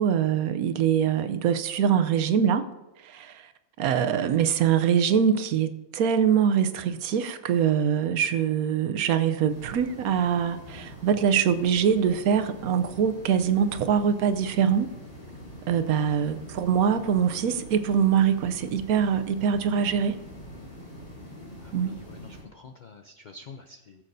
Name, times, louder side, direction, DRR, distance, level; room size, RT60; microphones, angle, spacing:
voice 1, 0.0-2.7 3.0-3.5 3.8-14.9 15.7-20.2 21.7-22.0, right 8 dB, 80° right, 10 dB, 1.1 m, -23 dB
sound 1, 9.5-22.4, equal, 35° left, 3.1 m, -44 dB
voice 2, 16.3-16.7 21.6-24.0, left 4 dB, 65° left, 5 dB, 0.4 m, -48 dB
17.5 x 7.4 x 2.6 m, 0.99 s
omnidirectional pair, 1.5 m